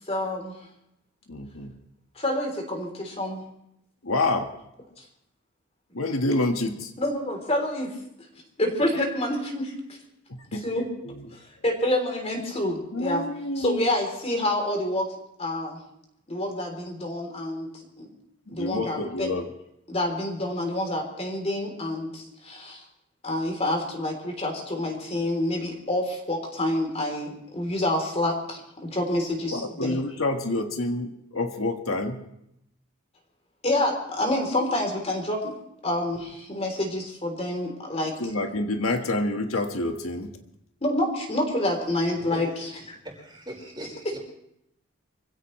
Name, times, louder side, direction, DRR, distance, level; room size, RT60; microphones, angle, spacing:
voice 1, 0.1-0.6 2.2-3.4 7.0-7.9 8.6-9.7 10.6-10.9 11.3-13.2 13.6-15.1 15.4-15.8 16.3-17.7 18.0-18.1 18.5-19.3 19.9-22.8 23.2-30.0 33.6-35.5 35.8-38.2 40.8-42.5 42.9-43.0, left 1 dB, 30° left, 3.4 m, -27 dB
voice 2, 1.3-1.8 4.0-4.5 5.9-6.9 10.3-10.7 11.0-11.3 12.9-13.9 18.5-19.5 29.5-32.2 38.2-40.4, left 2 dB, 80° left, 1.6 m, -28 dB
voice 3, 42.3-42.7 43.0-44.2, right 1 dB, 20° right, 4.6 m, -40 dB
25.5 x 16.0 x 3.2 m
head